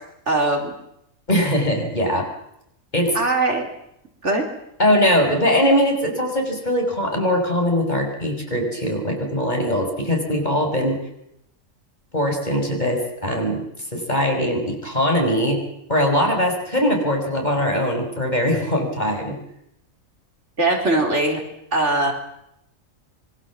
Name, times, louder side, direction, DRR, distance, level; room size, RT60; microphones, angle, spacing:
voice 1, 0.3-0.7 3.1-3.7 4.2-4.4 20.6-21.4 21.7-22.1, right 2 dB, 60° right, 3 dB, 4.2 m, -20 dB
voice 2, 1.3-2.3 2.9-3.2 4.8-11.0 12.1-13.7 13.9-15.6 15.9-19.4, equal, 35° left, 2 dB, 5.9 m, -21 dB
26.5 x 24.0 x 7.4 m, 0.79 s
omnidirectional pair, 1.4 m